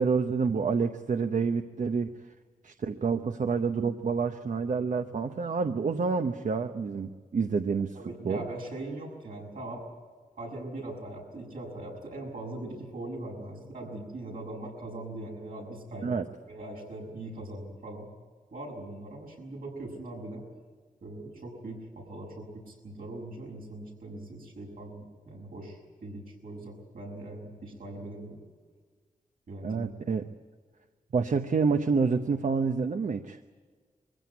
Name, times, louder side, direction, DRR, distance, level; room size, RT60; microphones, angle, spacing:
voice 1, 0.0-2.1 2.6-8.0 8.2-8.4 16.0-16.2 29.6-30.2 31.1-33.4, right 5 dB, 60° right, 7 dB, 0.9 m, -28 dB
voice 2, 7.9-9.8 10.4-16.1 16.5-18.1 18.5-20.4 21.0-28.4 29.5-29.9, right 2 dB, 75° right, 0 dB, 6.7 m, -41 dB
23.5 x 15.5 x 9.7 m, 1.6 s
wide cardioid pair, 130°, 14 cm